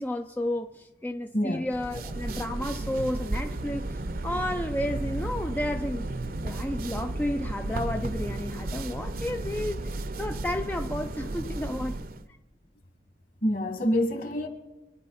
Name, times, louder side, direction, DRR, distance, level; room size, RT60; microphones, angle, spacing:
voice 1, 0.0-6.1 6.4-12.0, left 1 dB, 10° left, 0.4 m, -32 dB
voice 2, 1.3-1.7 13.4-14.5, equal, 50° left, 2.1 m, -26 dB
sound 1, 1.7-12.2, right 2 dB, 55° right, 0.7 m, -33 dB
25.5 x 10.0 x 4.1 m
head